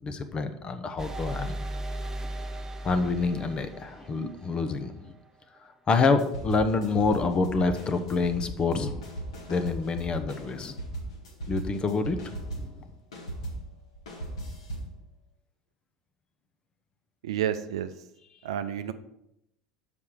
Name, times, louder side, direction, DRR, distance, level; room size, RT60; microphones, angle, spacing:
voice 1, 0.0-1.6 2.8-5.1 5.9-9.0 9.5-10.7 11.5-12.8, left 4 dB, 30° left, 9 dB, 0.8 m, -27 dB
sound 1, 1.0-4.7, right 1 dB, 20° right, 0.7 m, -36 dB
sound 2, 6.2-12.8 13.1-15.0, right 1 dB, 80° left, 1.7 m, -38 dB
voice 2, 17.2-17.9 18.4-18.9, right 10 dB, 70° right, 10 dB, 0.5 m, -30 dB
7.0 x 5.1 x 4.8 m, 0.81 s
figure-of-eight pair, 70°, 3 cm